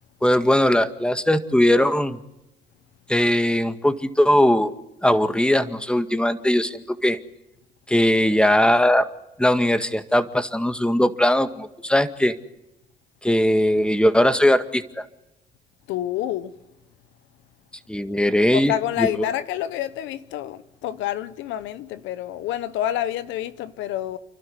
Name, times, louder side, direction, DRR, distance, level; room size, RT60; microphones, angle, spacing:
voice 1, 0.2-2.2 3.1-4.7 5.0-7.2 7.9-9.1 9.4-12.4 13.2-15.0 17.9-18.7 19.0-19.1, left 1 dB, 5° left, 1.9 m, -19 dB
voice 2, 15.9-16.5 18.5-24.2, left 12 dB, 85° left, 1.0 m, -28 dB
30.0 x 12.0 x 9.8 m
supercardioid pair, 70°, 19 cm